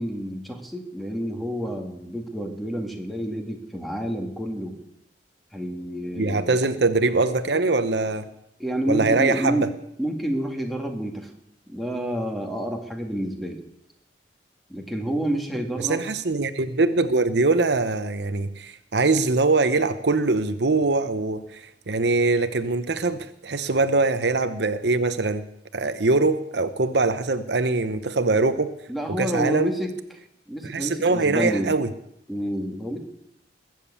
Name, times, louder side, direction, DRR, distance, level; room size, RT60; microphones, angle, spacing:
voice 1, 0.0-4.8 5.5-6.6 8.6-9.7 10.0-11.3 11.7-13.6 14.7-16.0 28.9-29.9 30.5-31.7 32.3-33.0, equal, ahead, 3 dB, 2.1 m, -29 dB
voice 2, 6.2-8.3 8.9-9.6 15.8-25.4 25.7-28.7 29.1-29.7 30.6-31.9, right 3 dB, 65° right, 11 dB, 0.9 m, -22 dB
21.0 x 7.6 x 8.5 m, 0.78 s
head